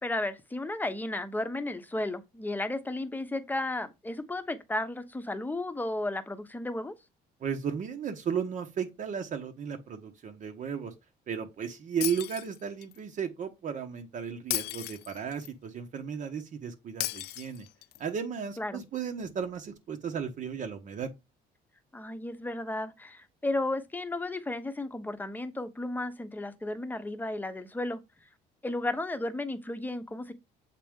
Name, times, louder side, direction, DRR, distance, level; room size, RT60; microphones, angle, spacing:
voice 1, 0.0-6.9 18.6-18.8 21.9-28.0 28.6-30.3, left 2 dB, 10° left, 0.9 m, -33 dB
voice 2, 7.4-10.9 11.3-17.7 18.0-21.1, right 7 dB, 50° right, 1.0 m, -35 dB
Shatter, 12.0-13.0 14.5-15.5 17.0-18.0, left 17 dB, 75° left, 0.4 m, -35 dB
7.5 x 4.1 x 3.6 m
cardioid pair, 110°, 17 cm